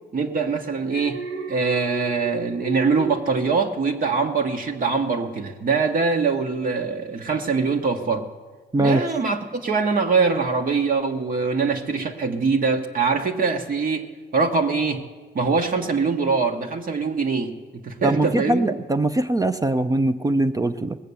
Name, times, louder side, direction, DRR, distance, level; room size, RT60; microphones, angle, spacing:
voice 1, 0.1-1.2 1.5-8.3 8.8-15.1 15.3-18.8, right 4 dB, 45° right, 3 dB, 1.1 m, -23 dB
Alarm, 0.8-4.1 4.5-4.9, right 3 dB, 65° right, 1.2 m, -35 dB
voice 2, 8.7-9.0 18.0-21.0, right 2 dB, 20° right, 10 dB, 0.5 m, -21 dB
20.0 x 7.5 x 6.9 m, 1.4 s
cardioid pair, 90°, 20 cm